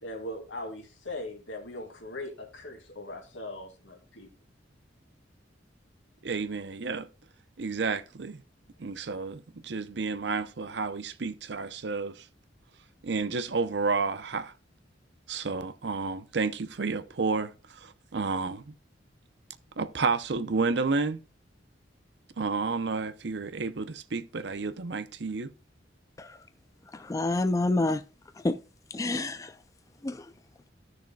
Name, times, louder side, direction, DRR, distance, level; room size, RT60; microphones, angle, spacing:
voice 1, 0.0-4.3, left 1 dB, 85° left, 2.3 m, -40 dB
voice 2, 6.2-7.1 7.6-8.4 8.8-12.3 13.0-14.5 15.3-18.7 19.8-21.2 22.4-25.5, right 4 dB, 65° right, 0.7 m, -31 dB
voice 3, 26.9-28.0 28.4-28.6 28.9-29.5 30.0-30.2, left 2 dB, 20° left, 0.4 m, -27 dB
15.0 x 6.5 x 2.3 m
head